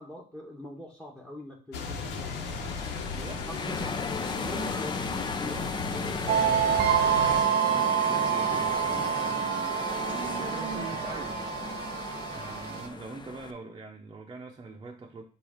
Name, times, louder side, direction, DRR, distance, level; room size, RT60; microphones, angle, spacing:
voice 1, 0.0-3.1 3.5-4.0 4.3-5.0 5.3-5.6, left 1 dB, 5° left, 1 dB, 1.3 m, -43 dB
sound 1, 1.7-7.4, left 4 dB, 80° left, 1.2 m, -36 dB
sound 2, 2.2-13.5, left 4 dB, 25° left, 0.6 m, -36 dB
voice 2, 3.0-4.7 5.4-9.1 9.7-11.5 12.2-15.2, right 3 dB, 25° right, 0 dB, 0.8 m, -44 dB
sound 3, 6.3-12.9, right 9 dB, 75° right, 0.5 m, -27 dB
7.9 x 2.7 x 5.0 m, 0.39 s
cardioid pair, 110°, 17 cm